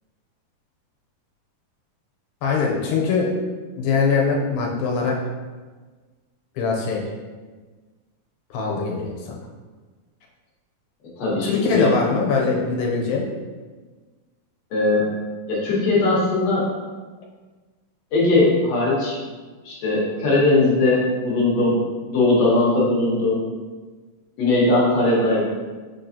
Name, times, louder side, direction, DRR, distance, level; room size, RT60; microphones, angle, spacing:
voice 1, 2.4-3.3 3.8-5.2 6.6-7.0 8.5-9.4 11.4-13.3, left 4 dB, 90° left, -1 dB, 2.5 m, -22 dB
voice 2, 11.2-11.9 14.7-15.1 15.5-16.7 18.1-19.2 19.6-21.8 22.1-23.4 24.4-25.4, left 2 dB, 65° left, -6 dB, 1.8 m, -19 dB
4.8 x 3.8 x 2.7 m, 1.4 s
omnidirectional pair, 4.0 m